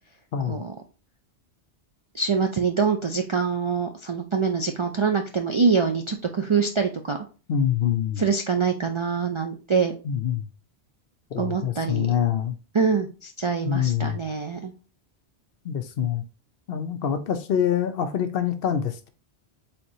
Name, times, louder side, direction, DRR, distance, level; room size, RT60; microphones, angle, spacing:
voice 1, 0.3-0.6 7.5-8.2 10.0-10.5 11.3-12.6 13.6-14.2 15.6-16.2 16.7-19.1, left 9 dB, 65° left, 0.8 m, -25 dB
voice 2, 2.1-7.2 8.2-9.9 11.4-12.1 12.7-14.7, right 5 dB, 50° right, 0.3 m, -24 dB
4.5 x 3.6 x 2.7 m
omnidirectional pair, 1.1 m